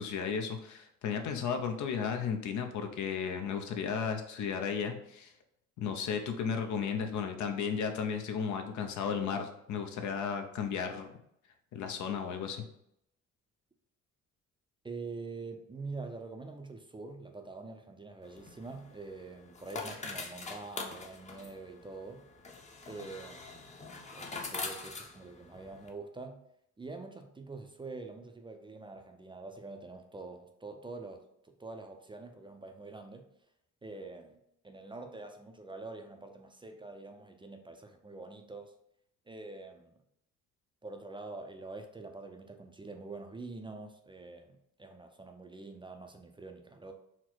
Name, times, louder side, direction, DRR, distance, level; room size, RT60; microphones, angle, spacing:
voice 1, 0.0-5.3 5.8-11.1 11.7-12.6, left 6 dB, 70° left, 5 dB, 0.7 m, -34 dB
voice 2, 14.8-22.3 22.9-23.7 24.1-26.5 26.8-33.3 33.8-38.7 39.3-40.0 40.8-46.9, right 3 dB, 15° right, 5 dB, 0.5 m, -45 dB
sound 1, 18.2-25.9, left 3 dB, 25° left, 0.7 m, -44 dB
4.3 x 2.1 x 4.4 m, 0.75 s
cardioid pair, 90°, 30 cm